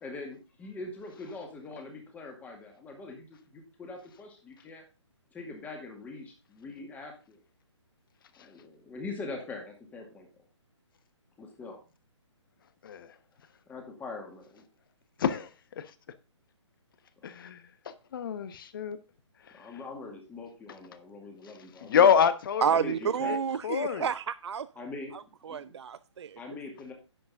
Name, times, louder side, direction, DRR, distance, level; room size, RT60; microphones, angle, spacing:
voice 1, 0.0-4.8 5.3-7.4 8.4-10.3 11.4-11.8 13.7-14.6 19.5-22.1 22.6-23.4 24.8-25.2 25.5-25.7 26.4-26.9, left 3 dB, 10° left, 2.1 m, -42 dB
voice 2, 17.2-17.6 18.1-19.0 21.8-22.9 23.2-23.4 23.6-24.1, left 7 dB, 45° left, 1.1 m, -26 dB
voice 3, 22.6-24.7 25.5-26.4, right 7 dB, 60° right, 0.4 m, -30 dB
10.5 x 7.6 x 3.7 m
figure-of-eight pair, 145°, 16 cm